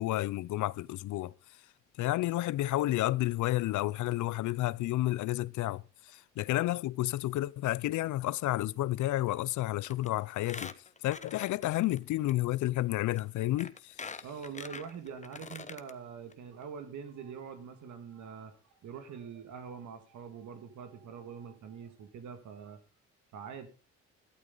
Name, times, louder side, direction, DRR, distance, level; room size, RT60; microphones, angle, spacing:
voice 1, 0.0-1.3 2.0-5.8 6.1-10.7 11.0-14.1, left 16 dB, 75° left, 0.6 m, -31 dB
Squeak, 9.8-10.1 10.4-12.0 12.3-12.4 13.2-13.3 13.6-15.9 16.3-16.4 16.6-16.7, left 4 dB, 25° left, 1.1 m, -44 dB
voice 2, 14.2-22.8 23.3-23.7, right 6 dB, 70° right, 2.0 m, -44 dB
14.5 x 12.5 x 3.9 m
cardioid pair, 90°, 30 cm